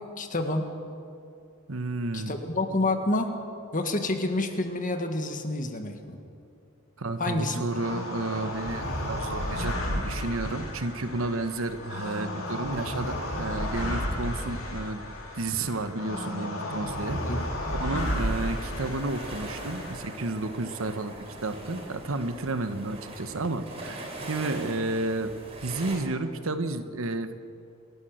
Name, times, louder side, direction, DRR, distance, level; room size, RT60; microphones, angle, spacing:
voice 1, 0.2-0.7 2.1-3.3 3.7-6.2 7.2-7.6 17.2-17.4, left 2 dB, 40° left, 6 dB, 1.8 m, -28 dB
voice 2, 1.7-2.4 7.0-15.0 15.3-17.2 17.8-21.1 21.4-25.3 25.6-27.3, right 2 dB, 70° right, 10 dB, 1.1 m, -31 dB
sound 1, 7.7-20.1, left 1 dB, 70° left, 4.6 m, -33 dB
sound 2, 18.0-26.0, right 1 dB, 30° right, 3.9 m, -41 dB
27.5 x 12.0 x 7.8 m, 2.5 s
head